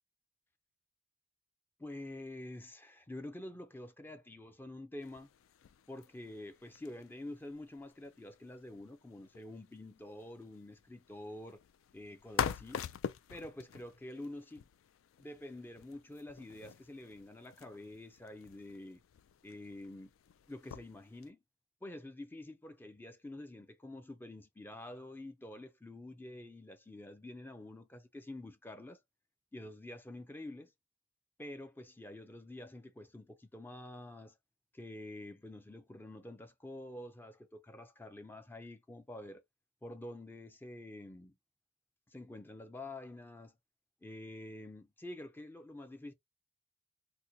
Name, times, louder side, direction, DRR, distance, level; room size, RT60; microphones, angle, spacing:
voice 1, 1.8-5.3 5.9-11.6 11.9-12.9 13.3-14.6 15.2-19.0 19.4-20.1 20.5-21.4 21.8-29.0 29.5-30.7 31.4-34.4 34.7-39.4 39.8-41.4 42.1-43.6 44.0-46.1, left 1 dB, 10° left, 0.4 m, -48 dB
sound 1, 5.0-21.3, left 8 dB, 75° left, 0.3 m, -46 dB
4.1 x 2.1 x 2.7 m
head